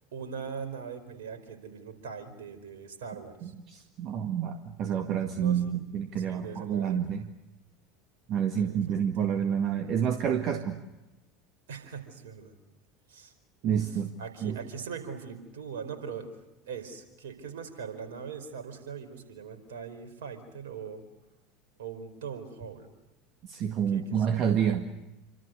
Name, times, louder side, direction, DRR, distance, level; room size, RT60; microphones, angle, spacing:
voice 1, 0.1-3.5 5.4-5.7 6.2-7.0 8.5-9.0 11.7-12.5 13.1-13.3 13.6-13.9 14.2-16.3 16.6-21.0 21.8-22.9 23.9-24.3, right 6 dB, 70° right, 8 dB, 4.8 m, -41 dB
voice 2, 3.7-7.3 8.3-10.8 13.6-14.1 14.4-14.6 23.5-24.9, right 8 dB, 45° right, 6 dB, 1.9 m, -28 dB
28.5 x 25.5 x 6.7 m, 0.98 s
figure-of-eight pair, 75°, 0 cm